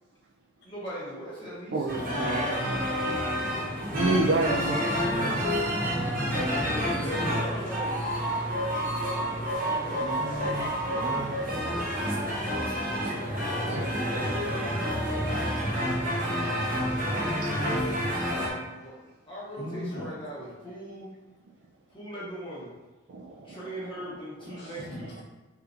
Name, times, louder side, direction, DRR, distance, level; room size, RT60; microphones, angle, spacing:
voice 1, 0.6-1.9 6.1-8.1 10.9-11.1 18.8-18.9 19.3-21.1 21.9-22.7 23.4-25.2, equal, 25° left, -8 dB, 0.8 m, -39 dB
sound 1, 1.9-18.5, equal, 45° right, 1.0 m, -29 dB
voice 2, 2.0-2.6 6.8-7.4 9.8-11.3 17.1-18.1 19.5-20.1 24.6-25.0, equal, 65° left, -3 dB, 0.9 m, -37 dB
voice 3, 3.9-4.8 13.0-13.2 13.6-13.8 23.1-23.6, right 2 dB, 65° right, -1 dB, 0.3 m, -27 dB
3.3 x 2.9 x 2.5 m, 1.3 s
head